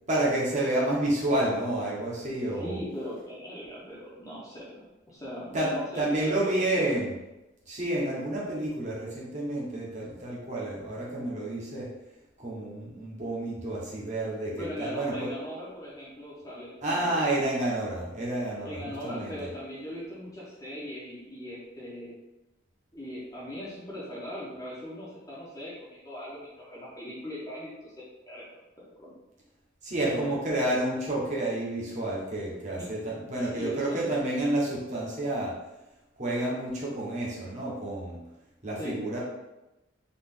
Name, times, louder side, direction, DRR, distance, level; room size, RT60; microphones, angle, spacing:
voice 1, 0.1-2.8 5.5-7.1 7.7-11.9 12.4-15.3 16.8-19.5 29.8-35.5 36.2-38.2 38.6-39.2, right 1 dB, 35° right, -5 dB, 1.2 m, -30 dB
voice 2, 2.5-7.0 14.4-17.3 18.6-22.1 22.9-27.9 28.3-28.4 28.8-29.1 30.0-30.4 32.8-32.9 33.4-34.1 38.8-39.0, equal, 15° left, -7 dB, 0.8 m, -39 dB
4.0 x 3.1 x 3.7 m, 0.99 s
head